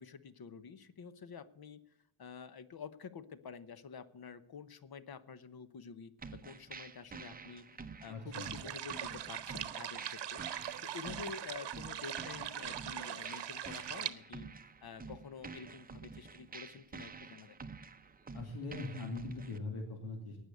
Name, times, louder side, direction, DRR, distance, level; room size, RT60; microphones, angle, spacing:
voice 1, 0.0-1.8 2.2-10.4 10.8-17.6, left 6 dB, 45° left, 13 dB, 1.0 m, -49 dB
sound 1, 6.2-19.6, right 4 dB, 20° right, 0.7 m, -49 dB
voice 2, 8.1-8.5 18.3-20.4, left 2 dB, 85° left, 2 dB, 2.8 m, -41 dB
sound 2, 8.3-14.1, right 10 dB, 55° right, 1.0 m, -41 dB
18.5 x 6.7 x 8.5 m, 0.80 s
wide cardioid pair, 150°, 49 cm